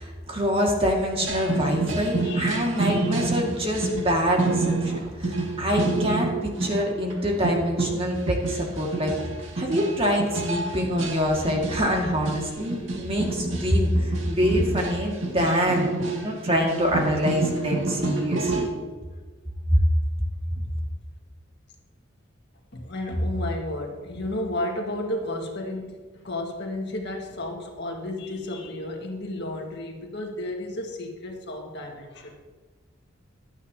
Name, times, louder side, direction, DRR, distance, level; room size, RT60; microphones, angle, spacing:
voice 1, 0.0-9.1 9.6-18.7 19.7-19.8, equal, 30° right, -1 dB, 2.1 m, -25 dB
sound 1, 1.2-6.8 7.1-7.2 7.4-18.6, right 3 dB, 70° right, 2.3 m, -28 dB
voice 2, 2.2-2.6 5.6-5.7 20.5-20.8 22.7-32.4, left 1 dB, 55° left, 1 dB, 1.8 m, -32 dB
15.5 x 12.0 x 2.9 m, 1.4 s
head